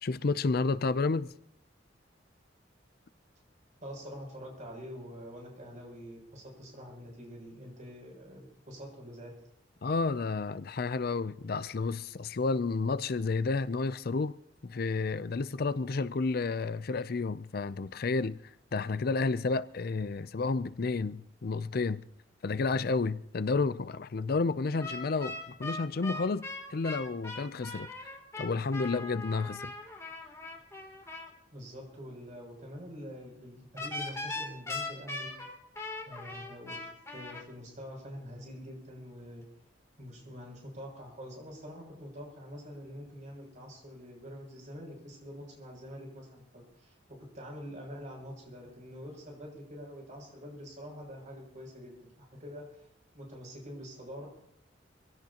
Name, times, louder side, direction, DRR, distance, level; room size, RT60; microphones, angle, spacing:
voice 1, 0.0-1.3 9.8-14.3 14.6-18.4 18.7-22.0 22.4-27.9 28.4-29.7, left 4 dB, 55° left, 0.5 m, -31 dB
voice 2, 3.8-9.4 31.5-35.3 36.0-36.8 37.1-39.4 40.0-46.4 46.8-52.9 53.1-54.3, equal, 45° right, 7.3 m, -45 dB
sound 1, 24.8-31.3 33.8-37.4, left 2 dB, 15° left, 2.9 m, -40 dB
26.0 x 16.5 x 2.9 m
head